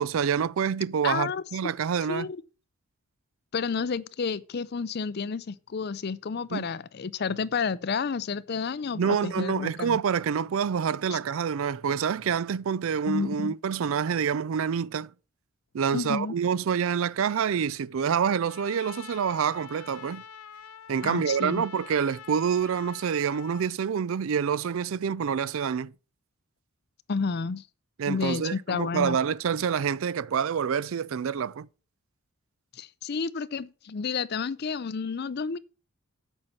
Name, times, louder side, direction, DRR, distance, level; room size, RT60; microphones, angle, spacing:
voice 1, 0.0-2.3 6.5-6.7 9.0-15.1 15.7-20.2 20.9-25.9 28.0-31.7, right 7 dB, 65° right, 0.4 m, -27 dB
voice 2, 1.0-1.7 2.1-2.4 3.5-10.0 11.1-11.2 13.1-13.5 15.9-16.3 21.0-21.7 27.1-27.6 28.1-29.2 32.7-35.6, left 5 dB, 45° left, 0.4 m, -31 dB
Trumpet, 18.4-23.7, left 7 dB, 90° left, 0.7 m, -46 dB
8.0 x 5.6 x 7.0 m
head